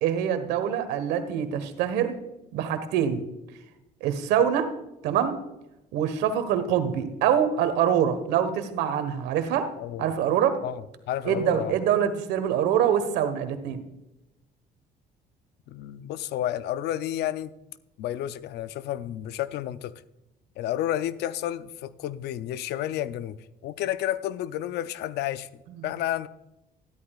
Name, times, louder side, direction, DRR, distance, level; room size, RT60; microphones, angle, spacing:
voice 1, 0.0-2.2 2.5-3.2 4.0-4.7 5.0-5.4 5.9-9.7 10.0-10.6 11.2-13.8 25.8-25.9, right 9 dB, 90° right, 9 dB, 1.4 m, -25 dB
voice 2, 10.6-11.7 15.7-17.5 18.0-19.9 20.6-23.4 23.6-26.3, left 12 dB, 75° left, 14 dB, 0.6 m, -31 dB
13.0 x 12.5 x 2.4 m, 0.92 s
cardioid pair, 110°, 17 cm